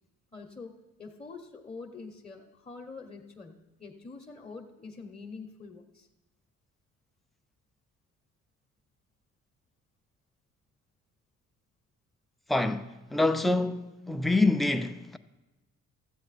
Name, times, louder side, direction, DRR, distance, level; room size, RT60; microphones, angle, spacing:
voice 1, 0.3-6.1, left 4 dB, 20° left, 0.9 m, -45 dB
voice 2, 12.5-15.2, left 2 dB, ahead, 0.4 m, -26 dB
14.0 x 7.9 x 4.1 m
cardioid pair, 90°, 30 cm